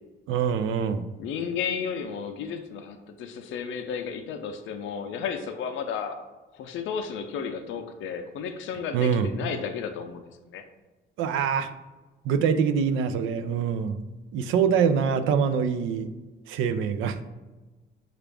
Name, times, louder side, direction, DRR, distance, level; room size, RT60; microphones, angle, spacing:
voice 1, 0.3-1.1 8.9-9.3 11.2-11.7 12.3-14.0 14.3-16.1 16.5-17.2, right 7 dB, 90° right, 10 dB, 0.4 m, -24 dB
voice 2, 1.2-6.2 6.5-10.2 10.5-10.6, left 6 dB, 75° left, 5 dB, 0.5 m, -33 dB
5.9 x 2.4 x 3.3 m, 1.2 s
cardioid pair, 90°, 20 cm